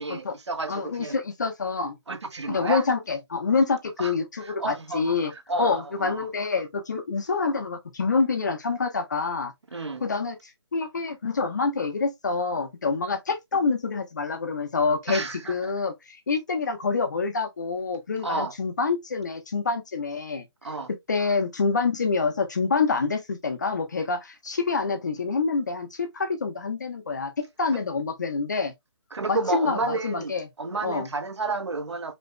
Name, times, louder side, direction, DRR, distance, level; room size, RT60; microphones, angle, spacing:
voice 1, 0.0-1.2 2.1-2.8 4.0-4.1 4.4-6.3 9.7-10.0 15.1-15.7 18.2-18.5 20.6-20.9 27.7-27.8 29.1-32.1, right 3 dB, 90° right, 1.4 m, -31 dB
voice 2, 0.7-2.0 2.5-5.3 5.6-9.5 10.0-10.4 10.7-15.2 15.5-20.4 21.1-28.7 29.3-30.5 30.8-31.1, left 4 dB, 40° left, 1.0 m, -27 dB
5.3 x 3.3 x 2.2 m
hypercardioid pair, 175°, 14 cm